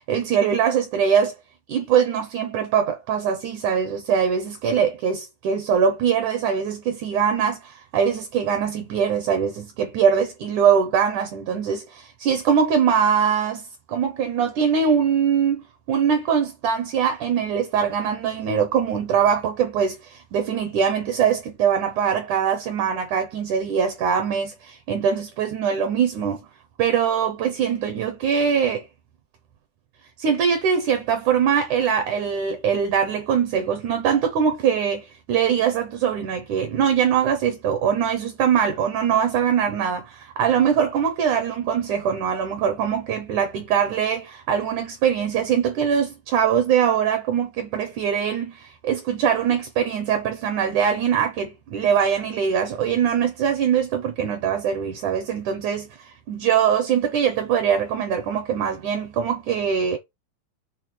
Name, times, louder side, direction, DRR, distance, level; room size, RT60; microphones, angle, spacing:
voice 1, 0.0-1.4 1.7-26.4 26.8-28.9 30.2-60.0, right 7 dB, 70° right, 2.0 m, -22 dB
7.0 x 3.4 x 6.0 m
omnidirectional pair, 4.6 m